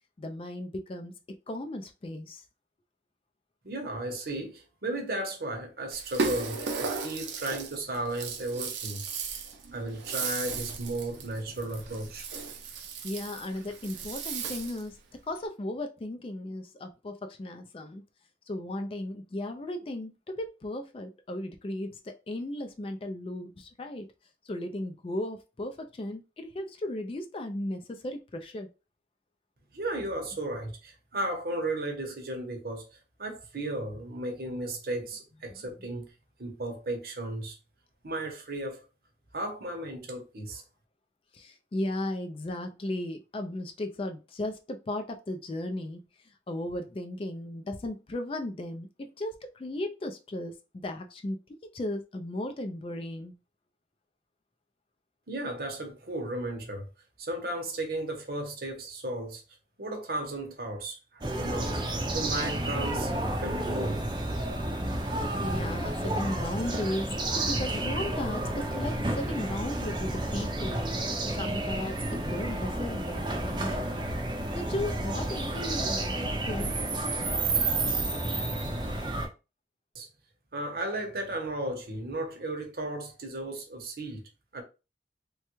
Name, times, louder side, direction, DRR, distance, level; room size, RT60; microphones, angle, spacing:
voice 1, 0.2-1.2 1.5-2.4 13.0-15.0 15.3-18.0 18.5-24.1 24.5-28.7 35.5-35.6 41.3-46.0 46.5-53.4 65.2-67.1 67.4-70.8 71.3-74.0 74.5-76.7, left 1 dB, 30° left, 0.3 m, -36 dB
voice 2, 3.6-9.0 9.5-12.3 29.7-36.1 36.4-37.6 38.0-38.8 39.3-40.6 55.3-56.9 57.2-59.4 59.8-63.1 63.4-64.1 79.9-80.1 80.5-84.6, right 1 dB, 55° right, 0.8 m, -35 dB
Rattle (instrument), 5.9-14.9, right 4 dB, 85° right, 0.6 m, -36 dB
sound 1, 61.2-79.3, right 2 dB, 25° right, 0.5 m, -31 dB
3.2 x 2.3 x 3.0 m
head